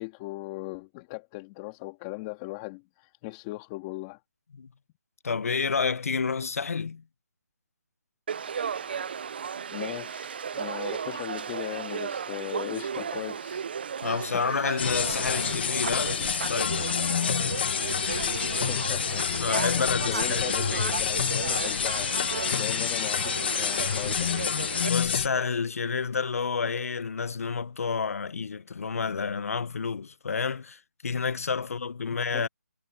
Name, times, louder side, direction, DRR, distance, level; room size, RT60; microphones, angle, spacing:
voice 1, 0.0-4.2 8.8-8.9 9.7-13.6 14.3-14.4 18.7-22.1 22.6-24.3 32.3-32.4, left 22 dB, 15° left, 2.3 m, -38 dB
voice 2, 5.2-7.0 14.0-16.9 19.4-21.0 24.9-32.5, left 5 dB, 55° left, 1.0 m, -30 dB
Conversation / Crowd, 8.3-24.9, right 7 dB, 35° right, 0.5 m, -35 dB
sound 1, 14.8-25.3, left 7 dB, 35° left, 1.2 m, -28 dB
hypercardioid pair, 165°, 9 cm